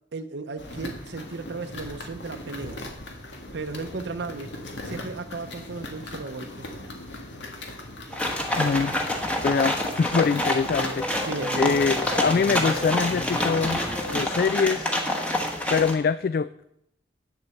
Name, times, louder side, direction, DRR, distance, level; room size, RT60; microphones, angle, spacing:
voice 1, 0.1-2.8 3.5-4.5 4.8-6.7 11.2-12.0, right 3 dB, 70° right, 7 dB, 0.6 m, -35 dB
sound 1, 0.6-14.2, left 1 dB, 85° left, 1.9 m, -39 dB
sound 2, 8.1-15.9, left 1 dB, 5° left, 1.3 m, -27 dB
voice 2, 8.6-9.0 9.4-11.3 11.6-13.8 14.1-14.9 15.7-16.5, left 5 dB, 50° left, 14 dB, 0.3 m, -24 dB
sound 3, 10.7-14.4, equal, 25° left, 2.5 m, -35 dB
9.1 x 8.2 x 7.0 m, 0.78 s
head